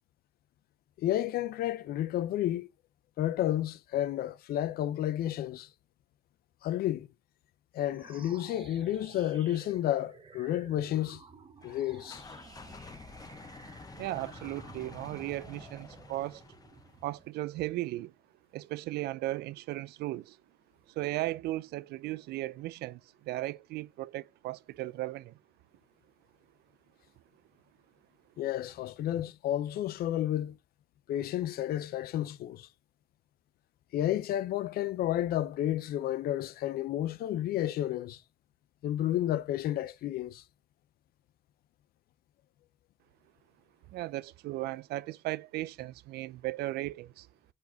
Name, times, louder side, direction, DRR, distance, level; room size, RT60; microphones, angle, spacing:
voice 1, 1.0-2.7 3.2-5.7 6.6-7.1 7.7-11.2 11.6-12.2 28.4-30.6 31.1-32.7 33.9-38.2 38.8-40.4, left 12 dB, 65° left, 0.6 m, -31 dB
sound 1, 7.9-17.4, right 5 dB, 30° right, 0.9 m, -53 dB
sound 2, 11.6-17.2, left 4 dB, 20° left, 0.8 m, -50 dB
voice 2, 14.0-16.4 17.0-18.1 18.5-20.4 20.9-25.4 43.9-47.3, right 17 dB, 75° right, 0.4 m, -36 dB
5.0 x 3.9 x 5.6 m
cardioid pair, 110°, 17 cm